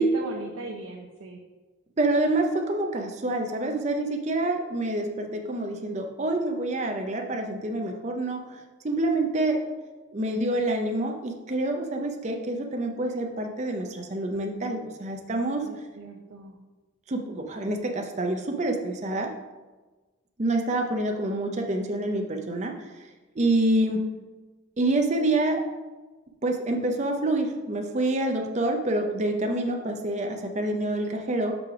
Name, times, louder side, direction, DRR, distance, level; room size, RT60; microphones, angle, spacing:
voice 1, 0.0-1.4 15.6-16.6, right 3 dB, 90° right, 1 dB, 0.6 m, -38 dB
voice 2, 2.0-8.4 8.8-9.6 10.1-15.6 17.1-19.3 20.4-22.7 23.4-24.0 24.8-25.6 26.4-31.5, right 2 dB, 35° right, 3 dB, 0.6 m, -27 dB
6.0 x 3.3 x 5.8 m, 1.2 s
head